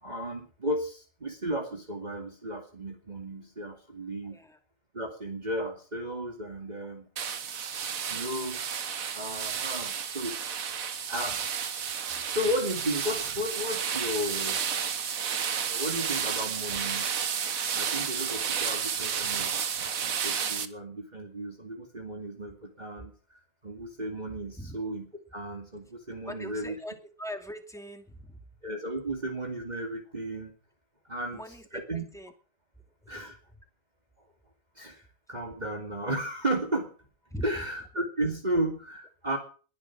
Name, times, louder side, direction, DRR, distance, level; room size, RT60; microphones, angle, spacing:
voice 1, 0.0-4.4 4.9-7.1 8.1-8.6 9.1-10.5 11.1-11.4 12.1-14.6 15.7-17.1 17.7-19.5 20.0-26.8 28.6-30.5 31.1-31.4 31.7-32.0 33.1-33.4 34.8-35.0 35.3-36.9 37.4-39.4, right 1 dB, 30° right, 2 dB, 2.6 m, -34 dB
voice 2, 4.2-4.6 24.6-24.8 26.3-28.5 31.3-31.8 32.1-32.3 32.8-33.3 37.3-37.6, equal, ahead, 4 dB, 2.4 m, -41 dB
sound 1, 7.2-20.7, right 7 dB, 85° right, 1.6 m, -31 dB
21.0 x 10.5 x 6.1 m, 0.41 s
omnidirectional pair, 1.4 m